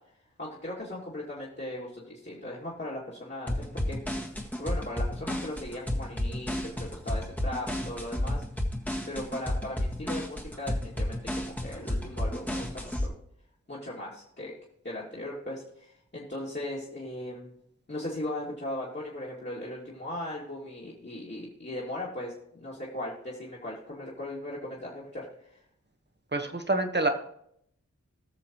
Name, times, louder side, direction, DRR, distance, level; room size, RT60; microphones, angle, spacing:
voice 1, 0.4-4.0 4.6-8.4 9.1-13.1 13.7-14.5 14.8-17.5 17.9-25.6, left 1 dB, 35° left, -7 dB, 2.6 m, -38 dB
sound 1, 3.5-13.1, left 1 dB, 5° left, 1.7 m, -31 dB
voice 2, 26.3-27.1, right 2 dB, 35° right, 6 dB, 1.4 m, -26 dB
19.5 x 6.5 x 3.1 m, 0.71 s
cardioid pair, 45°, 30 cm